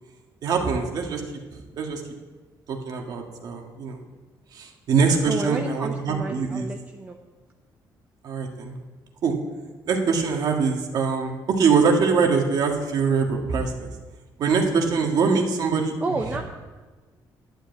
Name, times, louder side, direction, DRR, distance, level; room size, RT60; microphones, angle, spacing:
voice 1, 0.4-1.2 1.5-2.0 2.7-4.0 4.5-6.7 8.2-8.8 9.2-9.4 9.9-13.9 14.4-16.4, right 5 dB, 55° right, 3 dB, 1.8 m, -23 dB
voice 2, 5.3-7.2 16.0-16.4, right 3 dB, 20° right, 3 dB, 0.7 m, -30 dB
11.5 x 8.1 x 8.5 m, 1.3 s
cardioid pair, 170°, 8 cm